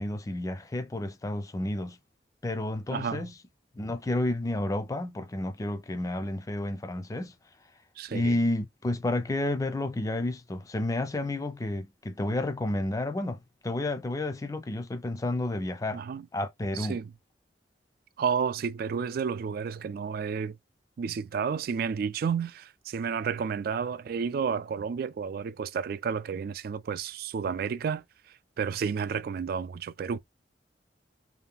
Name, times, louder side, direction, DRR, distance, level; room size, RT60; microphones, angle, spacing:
voice 1, 0.0-2.0 2.4-3.3 3.8-7.3 8.1-16.0 16.3-17.0, left 1 dB, 20° left, 0.4 m, -31 dB
voice 2, 2.9-3.3 8.0-8.4 15.9-16.3 16.7-17.1 18.2-20.6 21.0-28.0 28.6-30.2, right 6 dB, 55° right, 0.3 m, -31 dB
2.7 x 2.2 x 3.5 m
head